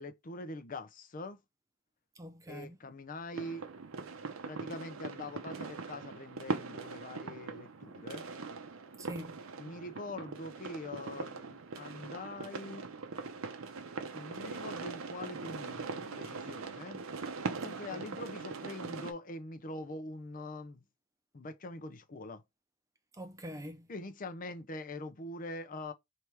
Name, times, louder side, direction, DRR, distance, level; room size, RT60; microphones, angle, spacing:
voice 1, 0.0-1.4 2.5-3.7 4.4-8.2 9.6-12.9 14.1-17.0 17.6-20.8 21.3-22.4 23.9-25.9, left 2 dB, 40° left, 0.6 m, -44 dB
voice 2, 2.1-2.8 8.9-9.5 17.7-18.2 23.1-23.9, equal, 15° right, 0.5 m, -45 dB
sound 1, 3.3-19.1, right 4 dB, 80° right, 0.7 m, -41 dB
3.3 x 2.9 x 4.5 m
head